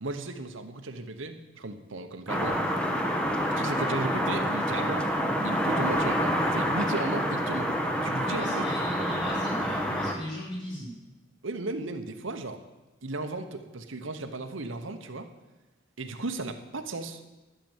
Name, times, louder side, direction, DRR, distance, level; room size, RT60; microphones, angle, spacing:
voice 1, 0.0-2.6 3.5-5.1 5.4-7.7 8.0-8.9 11.4-12.6 13.0-15.3 16.0-17.2, right 2 dB, 70° right, 6 dB, 1.0 m, -35 dB
sound 1, 2.3-10.1, equal, 5° left, 1.1 m, -27 dB
voice 2, 8.2-10.9, left 1 dB, 25° left, -6 dB, 5.8 m, -38 dB
12.0 x 6.9 x 8.9 m, 1.1 s
head